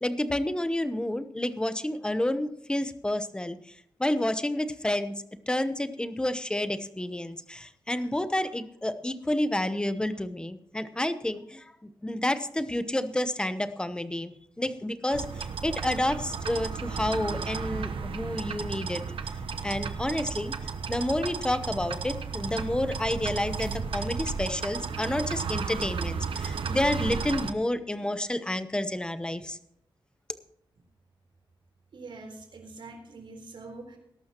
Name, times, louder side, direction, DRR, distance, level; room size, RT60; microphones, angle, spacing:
voice 1, 0.0-19.0 19.6-29.6, left 1 dB, 10° left, 12 dB, 0.9 m, -30 dB
sound 1, 15.1-27.5, right 5 dB, 80° right, 1.0 m, -34 dB
voice 2, 31.9-34.0, right 3 dB, 65° right, 4 dB, 4.0 m, -44 dB
20.5 x 12.0 x 3.0 m, 0.73 s
wide cardioid pair, 145°, 9 cm